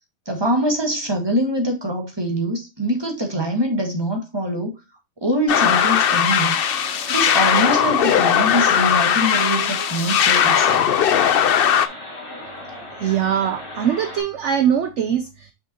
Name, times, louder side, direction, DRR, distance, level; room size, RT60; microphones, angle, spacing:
voice 1, 0.3-4.8 5.2-6.5 7.1-10.9, equal, 15° right, 1.9 m, -23 dB
sound 1, 5.5-11.9, left 9 dB, 85° left, 0.5 m, -18 dB
sound 2, 5.5-14.2, left 1 dB, 20° left, 2.3 m, -36 dB
voice 2, 13.0-15.5, right 9 dB, 60° right, 0.8 m, -22 dB
6.0 x 5.9 x 2.9 m
omnidirectional pair, 1.7 m